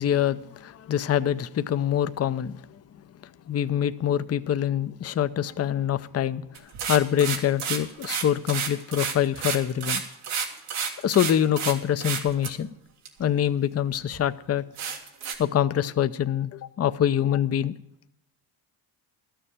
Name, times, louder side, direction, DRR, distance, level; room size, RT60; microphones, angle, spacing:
voice 1, 0.0-2.6 3.5-6.4 6.9-10.0 11.0-12.7 13.2-14.6 15.4-17.7, left 10 dB, 30° left, 0.6 m, -25 dB
sound 1, 6.6-11.7 12.0-12.5 13.1-13.2 13.7-13.8 14.1-14.2 14.8-15.4, right 7 dB, 85° right, 1.9 m, -30 dB
12.5 x 7.0 x 8.8 m
supercardioid pair, 70°, 50 cm